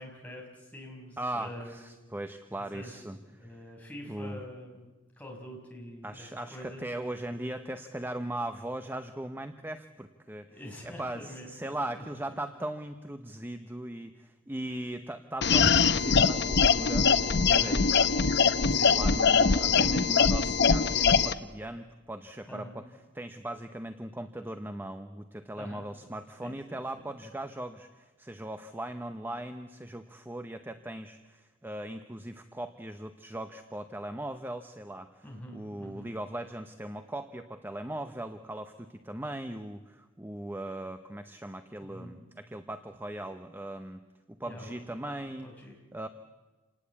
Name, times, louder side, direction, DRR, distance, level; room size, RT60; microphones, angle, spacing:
voice 1, 0.0-1.8 2.7-3.0 3.3-4.9 5.2-6.9 10.4-12.0 14.6-14.7 17.5-17.9 18.7-19.4 22.5-22.8 25.6-25.9 26.4-26.8 35.2-36.1 41.8-42.2 44.4-44.9 45.4-45.8, equal, 10° left, -1 dB, 5.8 m, -45 dB
voice 2, 1.2-3.7 4.0-4.4 6.0-10.5 10.8-22.9 23.1-35.2 35.5-44.0 44.3-45.5 45.9-46.1, right 1 dB, 10° right, 8 dB, 0.8 m, -39 dB
sound 1, 15.4-21.3, left 5 dB, 60° left, 0.9 m, -23 dB
28.0 x 19.0 x 8.4 m, 1.2 s
head